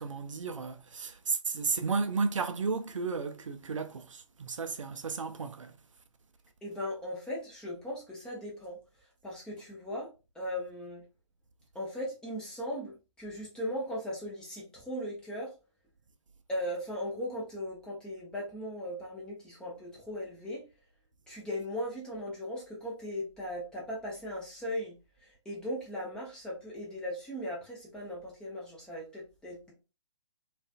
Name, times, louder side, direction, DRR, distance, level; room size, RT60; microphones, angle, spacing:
voice 1, 0.0-5.8, right 4 dB, 75° right, 0.4 m, -33 dB
voice 2, 6.6-8.8 9.2-10.1 10.3-11.0 11.7-15.5 16.5-20.6 21.3-24.9 25.2-29.7, equal, 5° left, 0.5 m, -38 dB
2.4 x 2.3 x 2.3 m
figure-of-eight pair, 130°, 17 cm